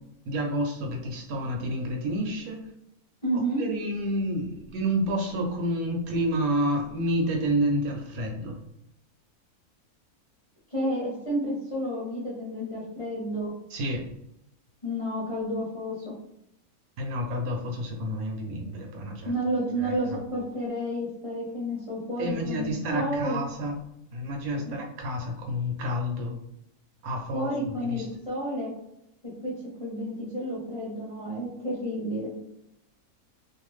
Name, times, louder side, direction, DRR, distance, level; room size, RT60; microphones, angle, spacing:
voice 1, 0.2-2.6 3.6-8.6 13.7-14.0 17.0-20.0 22.2-23.7 24.1-26.3 27.0-28.1, equal, 75° right, 2 dB, 1.0 m, -29 dB
voice 2, 3.2-3.6 10.7-13.5 14.8-16.1 19.2-23.4 27.3-28.7 29.4-29.5 29.8-32.3, equal, 30° left, -7 dB, 0.7 m, -30 dB
2.6 x 2.2 x 3.0 m, 0.81 s
omnidirectional pair, 1.6 m